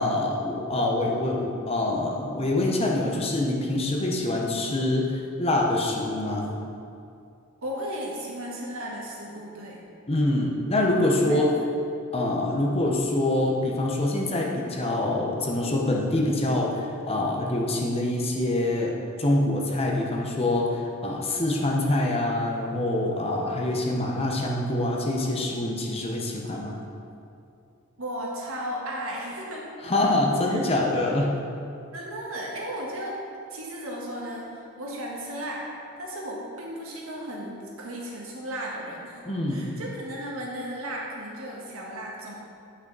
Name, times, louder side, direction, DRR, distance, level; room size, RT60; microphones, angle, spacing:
voice 1, 0.0-6.5 10.1-11.5 12.1-26.8 29.8-31.3 39.3-39.7, left 1 dB, 25° left, -1 dB, 0.8 m, -25 dB
voice 2, 7.6-9.8 11.1-11.4 28.0-29.7 30.5-30.6 31.9-33.2 33.5-35.7 36.0-39.2 39.5-42.3, equal, 75° right, -3 dB, 1.5 m, -35 dB
9.1 x 5.7 x 4.0 m, 2.5 s
head